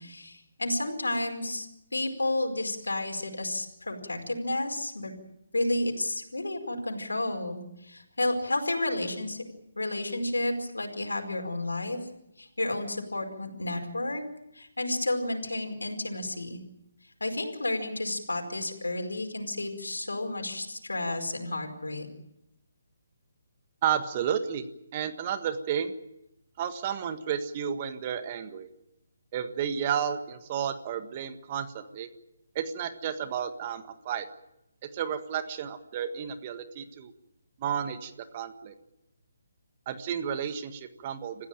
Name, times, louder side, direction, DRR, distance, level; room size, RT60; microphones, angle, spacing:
voice 1, 0.0-1.7 1.9-5.1 5.5-9.4 9.8-12.0 12.4-14.2 14.5-16.6 17.2-22.1, left 2 dB, 80° left, 4 dB, 4.9 m, -31 dB
voice 2, 23.8-24.6 24.9-25.9 26.6-28.7 29.3-32.1 32.5-34.3 34.9-37.1 37.6-38.7 39.8-41.5, right 8 dB, 35° right, 9 dB, 1.6 m, -32 dB
28.0 x 15.5 x 9.0 m, 0.85 s
figure-of-eight pair, 145°, 0 cm